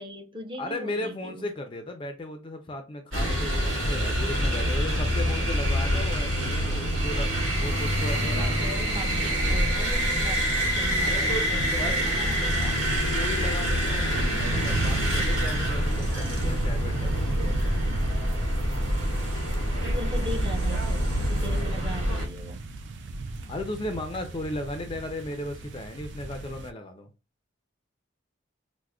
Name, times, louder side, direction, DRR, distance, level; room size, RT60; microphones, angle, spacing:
voice 1, 0.0-1.5 8.2-10.5 10.7-12.8 19.8-21.0 21.3-22.6, equal, 25° right, 0.6 m, -39 dB
voice 2, 0.6-7.3 7.6-8.6 11.0-11.5 11.8-11.9 12.6-12.7 13.1-17.9 23.5-27.1, left 1 dB, 25° left, 0.3 m, -36 dB
sound 1, 3.1-22.3, equal, 80° right, 1.3 m, -26 dB
sound 2, 11.6-26.7, right 2 dB, 60° right, 0.3 m, -36 dB
4.7 x 2.0 x 2.3 m
head